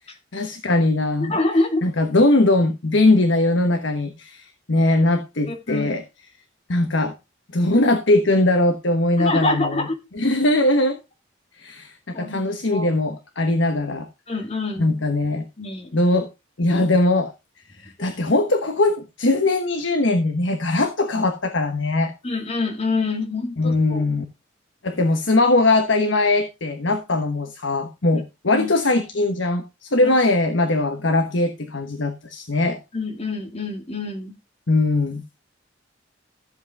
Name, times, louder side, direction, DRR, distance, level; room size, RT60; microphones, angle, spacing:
voice 1, 0.3-1.4 1.8-6.0 6.7-7.1 7.5-9.9 10.1-11.0 11.6-14.1 14.8-15.5 15.9-16.3 16.6-17.3 17.8-22.1 23.6-24.2 24.8-32.8 34.7-35.4, left 2 dB, 80° left, 7 dB, 1.2 m, -20 dB
voice 2, 1.2-1.8 5.5-5.9 9.2-9.9 12.1-12.4 12.7-12.9 14.3-14.9 15.6-16.0 18.0-18.1 22.2-24.1 28.1-28.2 28.5-28.7 32.9-34.3, left 2 dB, 35° left, 5 dB, 2.3 m, -26 dB
13.5 x 7.6 x 3.5 m, 0.25 s
head